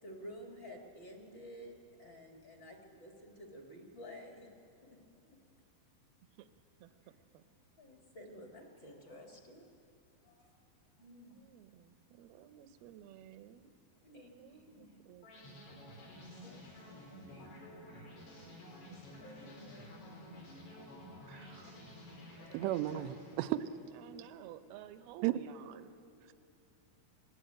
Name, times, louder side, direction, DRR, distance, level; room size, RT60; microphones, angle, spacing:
voice 1, 0.0-4.5 4.8-5.0 5.2-5.4 7.8-9.7 10.2-10.6 11.0-11.3 14.0-14.9 16.4-18.1 19.2-20.4 21.6-21.7 22.4-22.5 22.9-23.1, equal, 35° left, 1 dB, 2.2 m, -53 dB
voice 2, 6.8-7.4 11.0-13.8 14.2-16.2 18.1-19.6 20.2-20.5 23.9-26.3, right 10 dB, 75° right, 10 dB, 2.6 m, -55 dB
sound 1, 15.2-24.3, equal, 85° left, 8.5 m, -52 dB
voice 3, 21.3-21.7 22.5-23.7 25.2-25.4, right 14 dB, 90° right, 11 dB, 2.9 m, -34 dB
27.0 x 20.0 x 8.9 m, 2.6 s
omnidirectional pair, 4.9 m